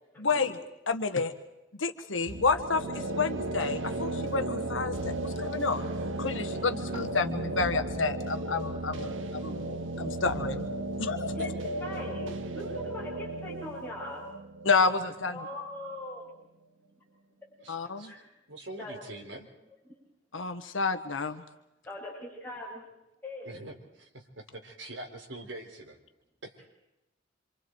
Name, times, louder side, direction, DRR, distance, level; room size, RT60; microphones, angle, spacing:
voice 1, 0.2-0.5 0.9-1.3 1.8-5.9 6.2-9.7 10.0-10.7 11.0-11.3 14.6-15.4 17.7-18.1 20.3-21.4, left 4 dB, 90° left, 8 dB, 1.5 m, -29 dB
sound 1, 2.3-15.9, right 1 dB, 90° right, 1.3 m, -35 dB
voice 2, 11.8-14.3 15.3-16.3 18.1-18.3 18.8-19.0 21.8-22.8 23.2-23.5, left 1 dB, 10° left, -5 dB, 8.0 m, -40 dB
voice 3, 17.6-18.1 18.5-19.5 23.4-26.0 26.4-26.7, right 2 dB, 75° right, 2 dB, 4.2 m, -44 dB
27.0 x 26.5 x 4.7 m, 0.92 s
head